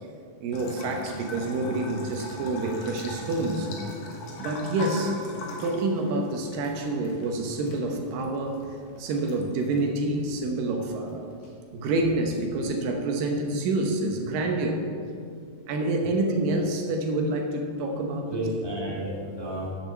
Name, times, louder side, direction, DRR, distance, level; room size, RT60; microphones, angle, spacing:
voice 1, 0.4-3.7 4.4-5.2 5.6-8.6 9.0-11.2 11.7-14.8 15.7-18.4, right 2 dB, 80° right, 3 dB, 2.7 m, -27 dB
Bathtub (filling or washing) / Trickle dribble, 0.5-11.5, left 2 dB, 65° left, 2.5 m, -39 dB
voice 2, 16.0-16.3 18.3-19.7, right 1 dB, 10° left, -7 dB, 1.8 m, -32 dB
10.0 x 6.7 x 7.0 m, 2.3 s
omnidirectional pair, 4.0 m